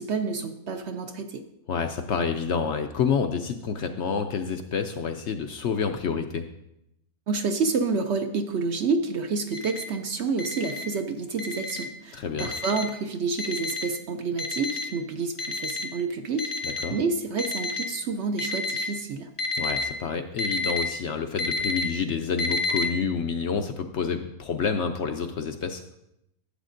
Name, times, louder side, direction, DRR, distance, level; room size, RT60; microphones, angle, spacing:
voice 1, 0.0-1.4 7.3-19.3, right 4 dB, 60° right, 6 dB, 0.8 m, -29 dB
voice 2, 1.7-6.5 12.1-12.5 16.6-17.0 19.6-25.8, left 6 dB, 65° left, 6 dB, 0.7 m, -28 dB
Alarm, 9.5-9.8 10.4-10.8 11.4-11.8 12.4-12.8 13.4-13.8 14.4-14.9 15.4-15.9 16.4-16.9 17.4-17.9 18.4-18.9 19.4-19.8 20.4-20.8 21.4-21.8 22.4-22.8, left 2 dB, 40° left, 0.4 m, -29 dB
11.5 x 8.1 x 2.5 m, 0.83 s
omnidirectional pair, 1.5 m